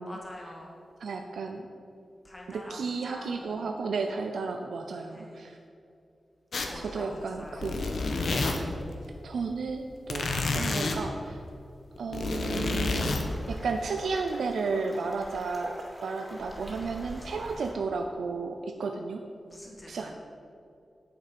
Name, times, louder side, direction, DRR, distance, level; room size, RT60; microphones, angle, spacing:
voice 1, 0.0-0.8 2.2-3.8 5.1-5.6 6.6-7.7 16.3-16.5 16.9-17.6 19.4-20.1, left 1 dB, 20° left, -2 dB, 2.1 m, -46 dB
voice 2, 1.0-1.7 2.5-5.6 6.8-7.9 9.2-11.4 12.0-19.2 19.9-20.1, right 4 dB, 85° right, 4 dB, 0.6 m, -33 dB
sound 1, 6.5-6.9 7.3-8.8 10.1-11.0 12.0-13.3, left 3 dB, 75° left, 1.1 m, -29 dB
sound 2, 12.4-17.7, equal, 5° right, 2.5 m, -45 dB
10.5 x 8.2 x 5.3 m, 2.5 s
wide cardioid pair, 110°, 0 cm